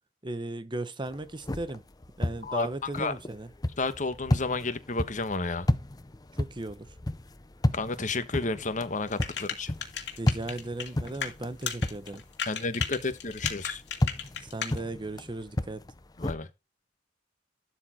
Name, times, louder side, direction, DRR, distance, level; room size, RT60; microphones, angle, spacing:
voice 1, 0.2-1.8 2.2-3.5 6.4-6.9 10.2-12.2 14.4-15.8, right 2 dB, 25° right, 0.9 m, -36 dB
sound 1, 1.1-12.5 12.8-16.4, left 1 dB, 20° left, 0.6 m, -33 dB
voice 2, 3.8-5.7 7.7-9.7 12.5-13.8 16.2-16.5, left 3 dB, 45° left, 1.2 m, -31 dB
sound 2, 9.1-11.3 11.6-14.8, left 7 dB, 75° left, 2.6 m, -34 dB
12.0 x 4.5 x 4.2 m
head